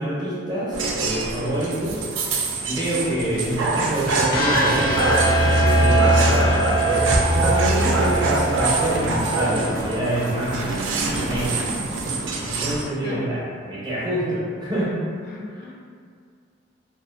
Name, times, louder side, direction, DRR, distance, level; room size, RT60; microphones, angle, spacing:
voice 1, 0.0-2.1 2.6-5.2 5.7-6.2 7.3-11.6 12.4-14.9 15.6-15.7, right 1 dB, 20° right, -7 dB, 0.5 m, -26 dB
sound 1, 0.7-12.8, right 3 dB, 75° right, 0.3 m, -24 dB
sound 2, 4.3-10.4, right 1 dB, 85° left, 0.6 m, -22 dB
voice 2, 6.3-6.9 13.0-13.4 15.3-15.7, left 2 dB, 50° left, -2 dB, 0.3 m, -35 dB
2.4 x 2.3 x 2.3 m, 2.1 s
head